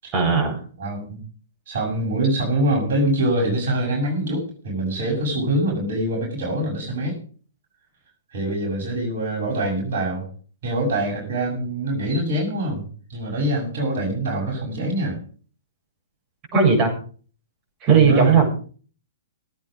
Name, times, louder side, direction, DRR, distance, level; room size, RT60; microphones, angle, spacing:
voice 1, 0.1-0.6 16.5-16.9 17.8-18.4, right 5 dB, 30° right, 0 dB, 7.8 m, -17 dB
voice 2, 0.8-1.2 1.7-7.2 8.3-10.3 10.6-15.2 17.9-18.4, right 1 dB, 55° right, 0 dB, 6.6 m, -24 dB
17.5 x 9.2 x 5.1 m, 0.41 s
figure-of-eight pair, 115°, 0 cm